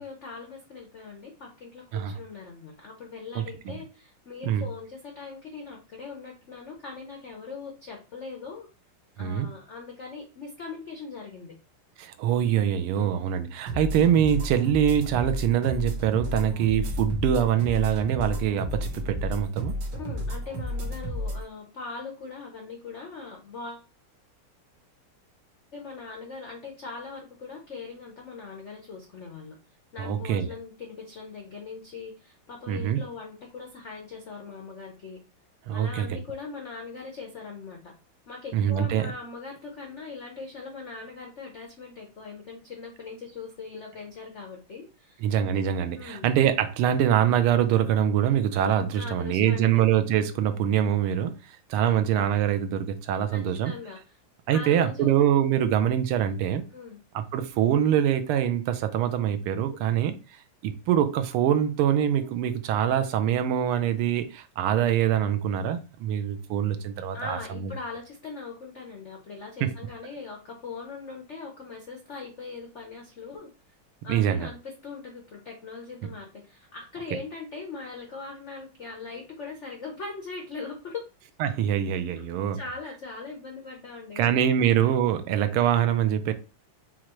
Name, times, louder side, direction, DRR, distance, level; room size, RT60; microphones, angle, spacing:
voice 1, 0.0-8.7 9.2-11.5 12.9-13.1 16.3-16.6 20.0-23.8 25.7-29.5 29.9-35.2 35.7-37.9 38.3-45.2 45.9-46.3 48.9-49.9 53.3-54.2 54.5-55.2 56.7-57.0 67.1-73.5 74.0-81.1 82.1-84.7, left 4 dB, 80° left, 0.6 m, -40 dB
voice 2, 3.3-3.7 4.5-4.6 9.2-9.5 12.0-19.8 30.0-30.5 32.7-33.0 35.7-36.2 38.5-39.1 45.2-51.4 51.7-53.7 54.5-56.6 57.1-60.1 60.6-67.7 69.6-69.7 74.1-74.5 81.4-82.6 84.2-86.3, right 9 dB, 85° right, 1.5 m, -24 dB
sound 1, 13.7-21.4, equal, 60° right, 1.7 m, -32 dB
5.8 x 2.5 x 3.0 m
omnidirectional pair, 2.4 m